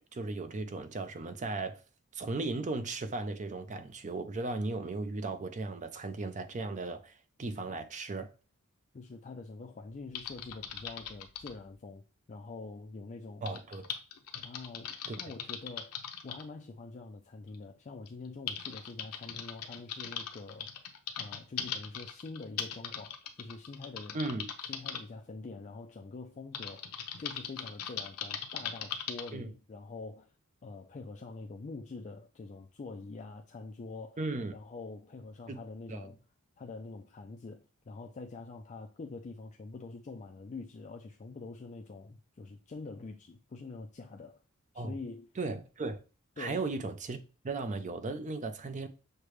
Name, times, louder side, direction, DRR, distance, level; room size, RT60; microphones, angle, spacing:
voice 1, 0.1-1.8 2.1-7.1 7.4-8.3 13.4-13.8 15.1-15.2 24.1-24.5 29.3-29.5 34.2-34.6 35.5-35.6 35.9-36.1 44.8-45.0 45.4-46.0 46.4-47.2 47.4-48.9, right 3 dB, 35° right, 0.5 m, -36 dB
voice 2, 8.9-12.0 12.3-13.5 14.4-24.2 24.7-30.3 30.6-34.2 34.5-36.2 36.6-44.4 44.7-45.3 46.4-46.6, left 3 dB, 35° left, 0.4 m, -45 dB
Typing, 10.1-11.6 13.5-16.4 17.5-17.6 18.1-25.0 26.5-29.3, left 8 dB, 80° left, 0.7 m, -40 dB
6.5 x 2.2 x 3.1 m
head